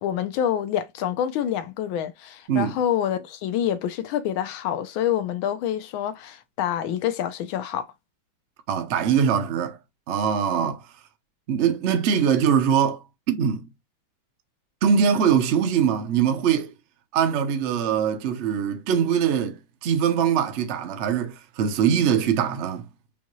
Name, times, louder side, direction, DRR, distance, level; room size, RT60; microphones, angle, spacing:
voice 1, 0.0-7.9, left 10 dB, 85° left, 1.5 m, -27 dB
voice 2, 8.7-9.8 10.1-10.9 11.5-13.0 13.3-13.7 14.8-16.7 17.1-22.9, right 8 dB, 70° right, 0.6 m, -22 dB
5.4 x 2.3 x 3.0 m
omnidirectional pair, 2.2 m